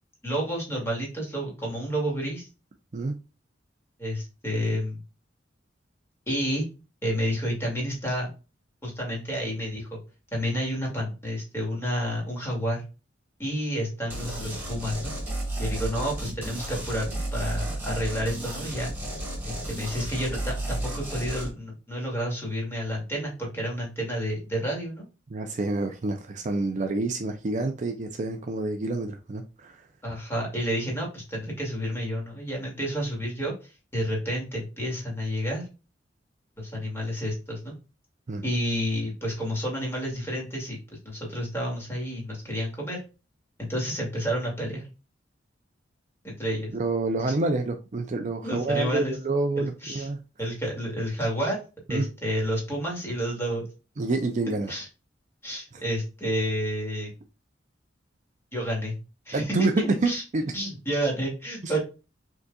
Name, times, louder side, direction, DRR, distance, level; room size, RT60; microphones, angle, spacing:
voice 1, 0.2-2.5 4.0-5.0 6.3-6.7 7.0-8.3 8.8-10.0 10.3-12.8 13.4-15.1 15.6-18.9 19.4-25.1 30.0-33.5 33.9-35.7 36.6-37.8 38.4-40.8 41.0-43.0 43.6-44.9 46.2-46.7 48.4-49.1 49.6-50.1 50.4-51.6 51.9-53.7 54.7-54.9 55.4-57.1 58.5-59.0 59.3-60.2 60.5-61.8, equal, 15° left, 2.3 m, -30 dB
sound 1, 14.1-21.5, right 1 dB, 10° right, 1.9 m, -33 dB
voice 2, 25.3-29.8 38.3-38.4 46.7-50.2 51.9-52.1 54.0-54.7 59.3-60.5 61.6-61.7, right 3 dB, 40° right, 0.5 m, -28 dB
5.3 x 3.8 x 2.3 m
head